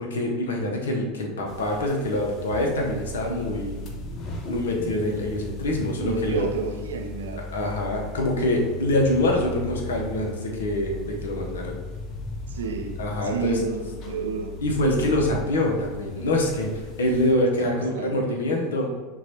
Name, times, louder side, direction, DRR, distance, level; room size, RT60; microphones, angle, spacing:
voice 1, 0.0-3.8 4.5-6.5 7.5-11.8 13.0-13.6 14.6-18.9, left 1 dB, 80° left, 0 dB, 0.7 m, -25 dB
sound 1, 1.5-17.3, left 2 dB, 45° left, 0.7 m, -37 dB
voice 2, 6.0-7.4 12.5-14.5 17.6-18.3, right 6 dB, 80° right, 4 dB, 0.5 m, -31 dB
5.9 x 2.3 x 2.8 m, 1.3 s
hypercardioid pair, 85°, 0 cm